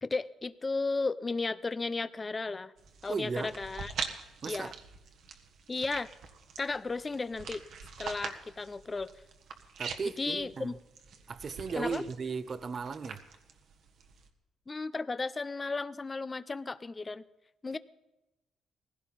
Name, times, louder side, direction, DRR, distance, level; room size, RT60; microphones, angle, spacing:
voice 1, 0.0-2.7 3.0-3.9 4.5-4.7 5.7-6.1 6.6-7.6 8.0-9.1 10.2-10.7 11.8-12.0 14.7-17.2 17.6-17.8, left 3 dB, 25° left, 0.6 m, -34 dB
sound 1, 2.8-14.3, right 6 dB, 70° right, 1.6 m, -44 dB
voice 2, 3.1-3.5 4.4-4.7 9.8-10.8 11.3-13.2, right 5 dB, 40° right, 0.8 m, -36 dB
19.0 x 16.0 x 4.2 m
cardioid pair, 90°, 0 cm